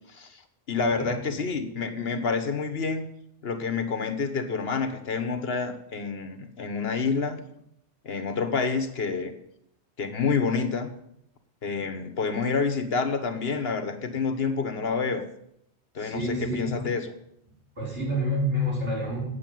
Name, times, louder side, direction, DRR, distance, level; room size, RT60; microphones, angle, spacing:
voice 1, 0.1-0.4 0.7-3.0 3.4-7.4 8.0-9.3 10.0-10.9 11.6-15.2 15.9-17.1, left 5 dB, 60° left, 7 dB, 1.4 m, -28 dB
voice 2, 1.0-1.4 16.0-16.8 17.8-19.2, equal, 85° right, -4 dB, 5.8 m, -28 dB
8.4 x 8.3 x 9.1 m, 0.75 s
omnidirectional pair, 1.2 m